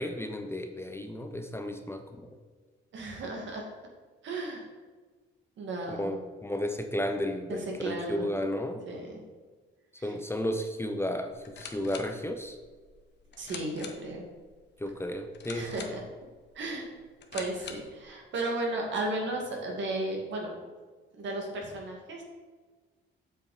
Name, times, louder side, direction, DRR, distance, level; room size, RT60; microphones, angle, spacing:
voice 1, 0.0-2.3 5.9-8.8 10.0-12.6 14.8-15.7, left 1 dB, 10° left, 5 dB, 0.8 m, -33 dB
voice 2, 2.9-3.7 4.2-4.7 5.6-6.2 7.5-8.3 8.9-9.2 10.0-10.1 13.4-14.2 15.5-16.0 16.5-16.9 17.3-20.5 21.1-22.2, right 2 dB, 70° right, 0 dB, 2.4 m, -34 dB
sound 1, 11.3-18.0, left 6 dB, 60° left, 1.1 m, -47 dB
7.6 x 6.8 x 5.1 m, 1.4 s
cardioid pair, 90°, 20 cm